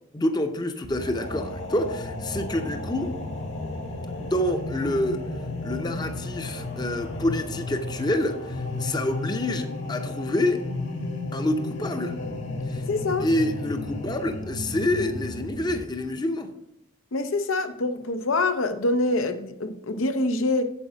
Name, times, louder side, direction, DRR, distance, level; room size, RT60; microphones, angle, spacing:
voice 1, 0.1-3.2 4.2-5.3 5.6-10.7 11.3-12.2 12.7-12.9 13.2-16.5, left 1 dB, 20° left, 0.7 m, -27 dB
sound 1, 0.8-15.8, left 2 dB, 65° left, 1.6 m, -33 dB
voice 2, 12.9-13.3 17.1-20.7, left 2 dB, 80° left, 0.7 m, -25 dB
8.4 x 7.7 x 5.0 m
head